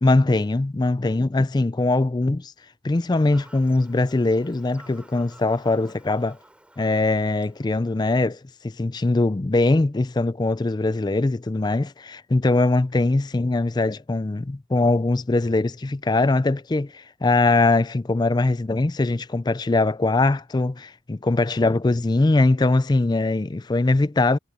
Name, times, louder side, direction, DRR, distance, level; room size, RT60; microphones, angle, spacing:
voice 1, 0.0-2.5 2.8-6.4 6.8-24.4, left 2 dB, 20° left, 0.4 m, -21 dB
Fowl / Bird vocalization bird call bird song, 3.1-8.1, right 1 dB, 5° right, 5.5 m, -52 dB
head